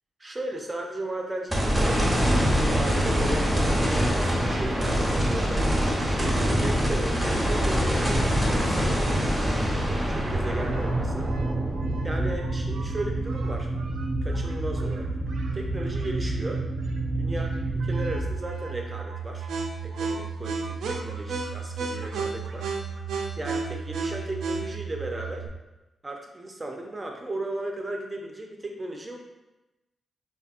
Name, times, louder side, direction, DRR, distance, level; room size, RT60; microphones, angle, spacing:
voice 1, 0.2-5.7 6.2-11.3 12.0-13.7 14.2-15.1 15.5-16.6 17.2-17.5 17.9-19.5 19.8-22.7 23.4-25.5 26.0-29.2, right 1 dB, 30° right, 1 dB, 0.5 m, -35 dB
sound 1, 1.5-13.8 14.3-14.4 17.7-17.8, equal, 10° right, 1.0 m, -25 dB
sound 2, 10.1-25.5, right 5 dB, 80° right, 0.4 m, -34 dB
sound 3, 10.6-18.2, right 2 dB, 65° left, 1.3 m, -30 dB
3.4 x 2.7 x 2.4 m, 1.0 s
supercardioid pair, 45°, 0 cm